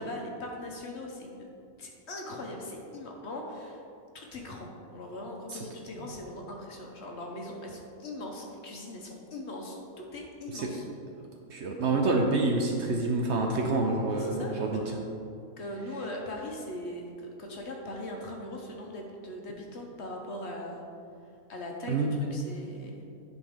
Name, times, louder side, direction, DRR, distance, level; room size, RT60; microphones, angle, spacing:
voice 1, 0.0-1.5 1.8-3.8 4.1-10.9 14.1-15.0 15.6-20.8 21.5-22.9, left 1 dB, 55° left, 0 dB, 1.0 m, -40 dB
voice 2, 11.5-15.0 21.9-22.1, right 3 dB, 60° right, 1 dB, 0.8 m, -27 dB
10.5 x 4.2 x 3.6 m, 2.5 s
omnidirectional pair, 1.5 m